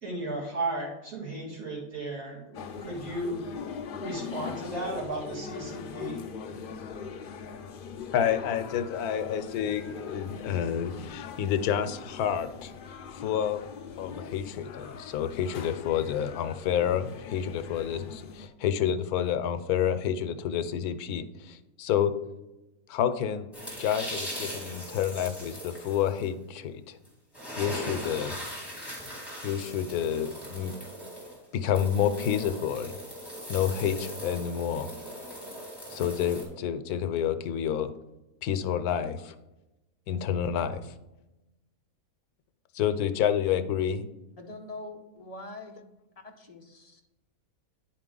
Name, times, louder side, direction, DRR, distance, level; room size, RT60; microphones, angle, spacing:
voice 1, 0.0-3.4 4.0-6.2, right 2 dB, 70° right, -6 dB, 2.4 m, -35 dB
sound 1, 2.5-18.5, left 6 dB, 70° left, 0.5 m, -41 dB
voice 2, 8.1-12.7 13.1-13.6 14.0-22.1 22.9-23.5 23.8-27.0 27.6-28.3 29.4-30.8 31.5-32.9 33.5-34.9 35.9-37.9 38.4-39.3 40.1-40.8 42.7-44.1, left 9 dB, 85° left, 10 dB, 1.1 m, -29 dB
sound 2, 23.5-26.3 27.0-27.1 27.3-36.4, equal, ahead, 2.3 m, -39 dB
voice 3, 44.4-45.8 46.2-47.0, left 2 dB, 35° left, 2 dB, 0.7 m, -43 dB
9.9 x 4.7 x 3.8 m, 0.99 s
omnidirectional pair, 1.6 m